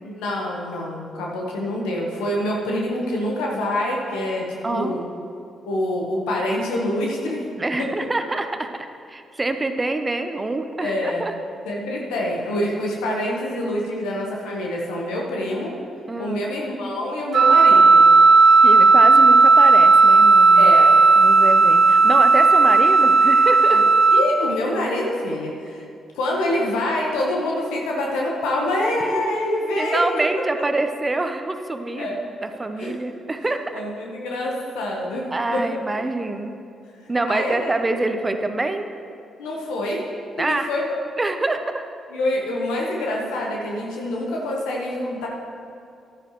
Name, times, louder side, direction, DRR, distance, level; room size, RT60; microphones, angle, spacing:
voice 1, 0.0-5.0 5.6-7.4 7.8-7.9 10.8-11.3 11.6-15.7 16.2-18.0 20.5-20.9 23.7-23.8 24.1-25.9 26.1-30.0 32.0-32.2 32.8-33.0 33.7-35.8 37.0-37.7 39.4-40.0 40.5-41.0 42.1-45.3, left 1 dB, 85° left, -2 dB, 1.2 m, -26 dB
voice 2, 4.6-5.0 7.6-11.3 16.1-16.4 18.6-20.7 21.2-23.8 29.0-29.4 29.8-33.6 35.3-36.5 37.1-38.9 40.4-40.7 41.2-41.9, right 2 dB, 25° right, 7 dB, 0.8 m, -26 dB
Wind instrument woodwind instrument, 17.3-24.3, right 4 dB, 60° right, 0.4 m, -13 dB
12.0 x 9.7 x 3.1 m, 2.4 s
supercardioid pair, 55°, 0 cm